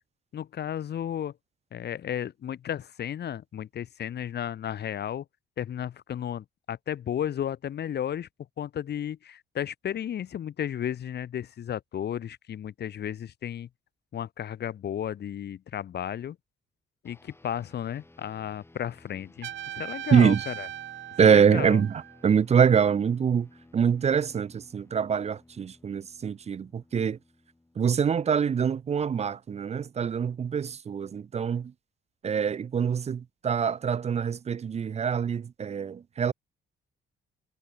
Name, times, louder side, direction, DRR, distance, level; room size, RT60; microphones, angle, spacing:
voice 1, 0.3-1.3 1.7-5.2 5.6-8.3 8.6-13.7 14.1-16.4 17.0-20.7 21.2-21.8, left 10 dB, 55° left, 1.2 m, -33 dB
sound 1, 17.0-28.7, left 2 dB, 10° left, 6.8 m, -57 dB
Trumpet, 19.4-22.3, right 12 dB, 70° right, 1.2 m, -39 dB
voice 2, 20.1-20.4 21.2-23.5 23.7-27.2 27.8-31.7 32.2-36.3, right 7 dB, 35° right, 0.5 m, -24 dB
cardioid pair, 90°, 20 cm